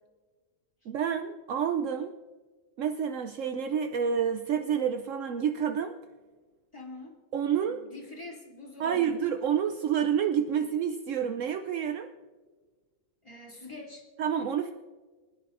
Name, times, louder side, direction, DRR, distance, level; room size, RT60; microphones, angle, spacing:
voice 1, 0.9-2.1 2.8-5.9 7.3-7.8 8.8-12.1 14.2-14.7, right 8 dB, 70° right, 7 dB, 1.0 m, -28 dB
voice 2, 6.7-7.2 7.7-9.2 13.2-14.1, left 2 dB, 20° left, -4 dB, 2.9 m, -45 dB
24.5 x 10.0 x 2.6 m, 1.4 s
omnidirectional pair, 1.4 m